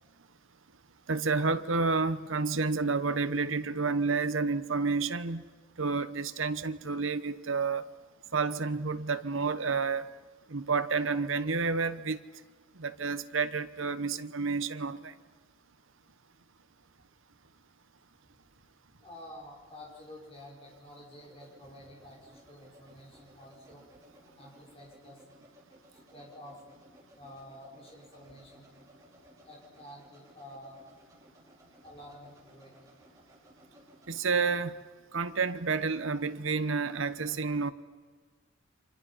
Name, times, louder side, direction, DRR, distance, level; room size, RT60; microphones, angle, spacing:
voice 1, 1.1-5.5 5.8-7.9 8.3-10.1 10.5-12.2 12.8-15.1 34.1-34.8 35.1-37.7, right 4 dB, 75° right, 12 dB, 1.0 m, -30 dB
sound 1, 18.9-34.3, equal, 15° right, 5.4 m, -59 dB
voice 2, 19.0-23.9 24.4-25.2 25.9-26.6 27.2-28.7 29.5-30.8 31.8-32.7, left 1 dB, 30° left, -2 dB, 5.3 m, -50 dB
29.5 x 25.0 x 5.7 m, 1.5 s
head